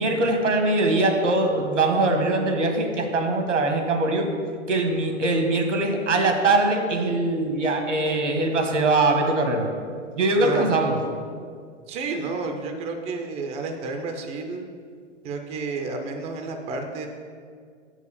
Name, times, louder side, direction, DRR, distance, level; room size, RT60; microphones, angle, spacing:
voice 1, 0.0-4.3 4.7-9.7 10.2-11.0, right 2 dB, 80° right, 4 dB, 1.3 m, -22 dB
voice 2, 11.9-14.6 15.2-17.1, right 3 dB, 15° right, 4 dB, 0.5 m, -31 dB
6.5 x 4.8 x 6.7 m, 2.1 s
figure-of-eight pair, 115°, 36 cm